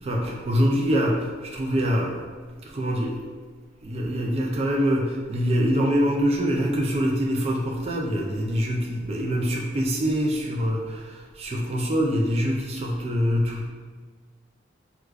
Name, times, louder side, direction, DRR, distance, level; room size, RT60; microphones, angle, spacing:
voice 1, 0.0-2.2 2.6-3.2 3.8-13.7, equal, 30° right, -2 dB, 0.4 m, -24 dB
4.7 x 2.3 x 2.4 m, 1.5 s
head